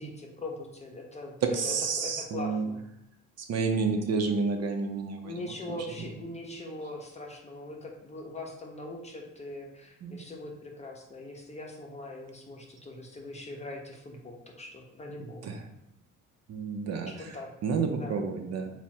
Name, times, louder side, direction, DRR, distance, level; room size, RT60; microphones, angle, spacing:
voice 1, 0.0-2.8 5.2-15.5 17.1-17.5 18.0-18.2, left 2 dB, 20° left, 0 dB, 0.7 m, -41 dB
voice 2, 1.4-2.7 3.4-5.3 10.0-10.2 15.2-15.6 16.5-17.4 17.6-18.7, right 5 dB, 60° right, 4 dB, 0.5 m, -30 dB
3.4 x 2.1 x 4.2 m, 0.81 s
cardioid pair, 90°, 30 cm